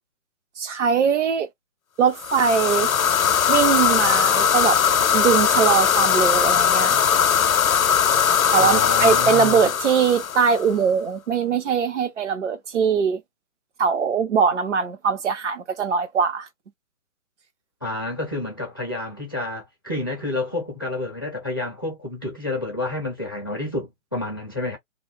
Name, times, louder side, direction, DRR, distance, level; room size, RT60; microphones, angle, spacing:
voice 1, 0.6-1.5 2.0-2.9 3.5-4.8 5.1-6.9 8.5-13.2 13.8-16.5, right 6 dB, 55° right, 0.9 m, -21 dB
sound 1, 2.2-10.7, left 8 dB, 85° left, 0.6 m, -20 dB
voice 2, 8.6-9.7 17.8-24.8, left 2 dB, 20° left, 0.4 m, -29 dB
2.7 x 2.0 x 3.1 m
figure-of-eight pair, 145°, 41 cm